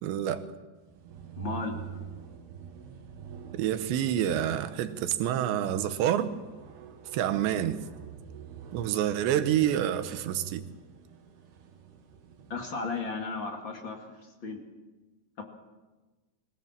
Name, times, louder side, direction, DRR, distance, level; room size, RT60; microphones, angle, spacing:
voice 1, 0.0-0.5 3.5-6.3 7.1-7.8 8.7-10.6, right 11 dB, 85° right, 10 dB, 3.4 m, -28 dB
sound 1, 0.8-12.8, right 8 dB, 70° right, 3.9 m, -46 dB
voice 2, 1.4-1.7 12.5-14.6 15.4-15.5, left 4 dB, 40° left, 3 dB, 2.0 m, -35 dB
24.5 x 17.0 x 7.5 m, 1.2 s
omnidirectional pair, 4.9 m